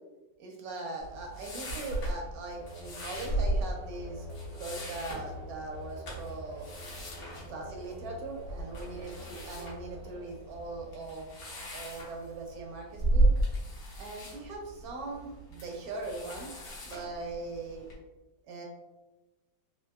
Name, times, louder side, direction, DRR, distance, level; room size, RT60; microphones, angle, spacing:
voice 1, 0.4-4.3 4.5-6.7 7.5-11.3 11.7-13.3 14.0-17.9 18.5-18.6, right 2 dB, 70° right, 0 dB, 1.0 m, -40 dB
sound 1, 1.0-17.9, right 1 dB, 70° left, 1.4 m, -35 dB
sound 2, 2.6-11.3, left 1 dB, 90° right, 1.4 m, -47 dB
3.6 x 2.5 x 2.3 m, 1.0 s
omnidirectional pair, 1.9 m